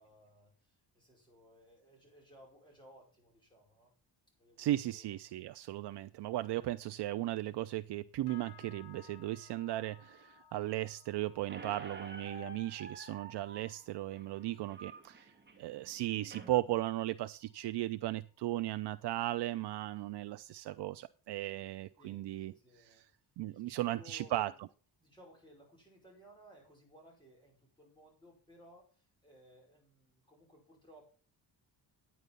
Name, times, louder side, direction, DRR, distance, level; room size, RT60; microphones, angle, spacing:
voice 1, 0.0-3.9 4.4-5.1 22.0-23.1 23.5-24.6 25.0-31.1, equal, 10° left, -3 dB, 5.1 m, -60 dB
voice 2, 4.6-23.0 23.4-24.5, right 15 dB, 75° right, 11 dB, 0.5 m, -36 dB
sound 1, 8.3-17.8 18.1-18.6 19.0-19.3 19.8-19.9, left 9 dB, 70° left, 2.5 m, -63 dB
Squeak, 11.5-16.5, right 3 dB, 25° right, 2.1 m, -50 dB
9.7 x 9.3 x 5.4 m, 0.39 s
wide cardioid pair, 150°, 41 cm